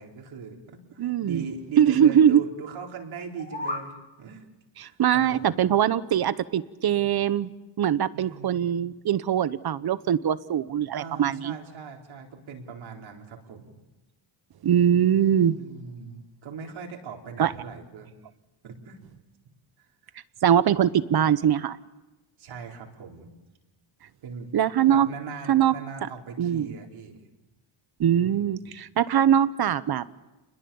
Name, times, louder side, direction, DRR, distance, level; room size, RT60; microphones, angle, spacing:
voice 1, 0.0-4.5 4.8-5.6 8.1-8.6 10.9-13.8 15.5-18.1 18.6-19.0 19.8-19.9 22.4-23.3 24.2-24.5 24.9-27.2 28.2-28.5, right 5 dB, 70° right, 1 dB, 4.2 m, -40 dB
voice 2, 1.0-1.4 1.8-2.4 4.8-7.5 7.8-11.5 14.6-15.6 17.4-17.5 20.4-21.8 24.5-25.1 25.5-25.7 26.4-26.7 28.0-30.0, right 9 dB, 50° right, 15 dB, 1.0 m, -22 dB
sound 1, 3.2-3.9, left 2 dB, 15° left, 2.8 m, -33 dB
28.5 x 21.5 x 7.1 m, 1.1 s
cardioid pair, 115°, 49 cm